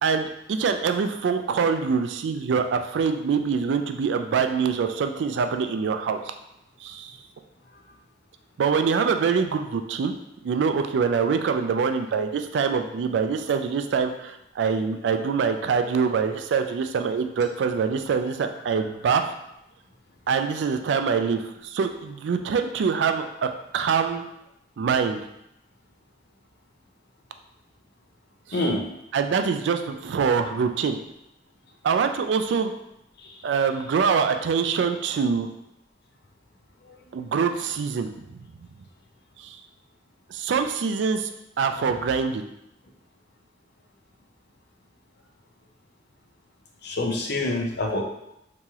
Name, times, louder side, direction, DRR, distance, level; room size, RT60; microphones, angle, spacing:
voice 1, 0.0-6.3 6.8-7.2 8.6-10.1 10.4-19.3 20.3-24.2 24.8-25.2 28.5-28.6 29.1-31.0 31.8-32.7 33.4-35.5 37.1-38.4 39.4-39.6 40.3-41.3 41.6-42.4, right 6 dB, 70° right, 7 dB, 0.3 m, -24 dB
voice 2, 28.5-28.8 46.8-48.0, left 2 dB, 60° left, 1 dB, 0.6 m, -26 dB
2.9 x 2.9 x 3.5 m, 0.84 s
head